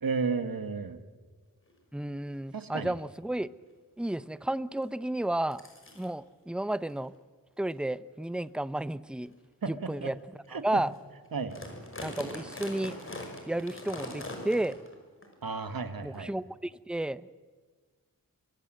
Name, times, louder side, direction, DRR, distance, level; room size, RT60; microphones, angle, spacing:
voice 1, 0.0-1.0 2.5-2.9 9.6-10.1 10.5-10.8 11.3-11.6 15.4-16.3, right 5 dB, 80° right, 10 dB, 1.8 m, -33 dB
sound 1, 1.7-1.8 2.2-2.4 3.0-3.1 3.4-3.7 4.8-4.9 5.5-6.1 6.8-7.0 7.6-7.8 8.4-8.5 9.2-9.4 9.9-10.0 10.4-10.5 10.7-11.0 11.3-14.9 15.2-15.3 16.1-16.2, left 1 dB, 35° left, 5.5 m, -42 dB
voice 2, 1.9-3.5 4.0-5.6 6.0-7.1 7.6-9.3 9.7-10.2 10.5-10.9 12.0-13.0 13.5-14.8 16.0-17.3, right 1 dB, 5° right, 16 dB, 0.7 m, -32 dB
24.5 x 23.5 x 7.8 m, 1.4 s
wide cardioid pair, 80°, 35 cm